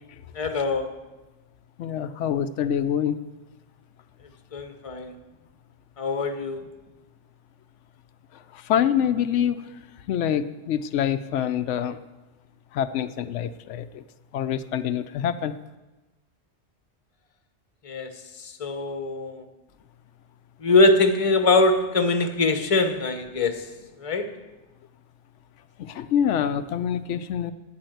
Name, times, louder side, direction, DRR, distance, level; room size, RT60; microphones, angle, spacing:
voice 1, 0.3-0.9 4.5-5.2 6.0-6.6 17.8-18.1 18.4-19.4 20.6-23.7 24.0-24.3, left 2 dB, 30° left, 0.9 m, -22 dB
voice 2, 1.8-3.2 8.5-9.6 10.1-12.0 12.7-14.0 14.3-15.5 25.8-27.5, left 9 dB, 90° left, 0.9 m, -25 dB
9.1 x 8.7 x 7.9 m
omnidirectional pair, 1.2 m